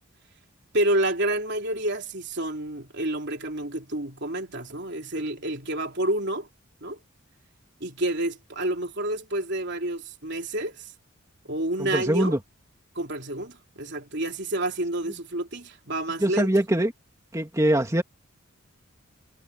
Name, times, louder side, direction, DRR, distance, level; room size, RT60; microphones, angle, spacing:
voice 1, 0.7-6.5 6.8-7.0 7.8-10.9 11.4-12.4 13.0-16.5, right 1 dB, 55° right, 3.5 m, -29 dB
voice 2, 11.8-12.4 16.2-16.9 17.3-18.0, right 1 dB, 15° right, 2.4 m, -22 dB
head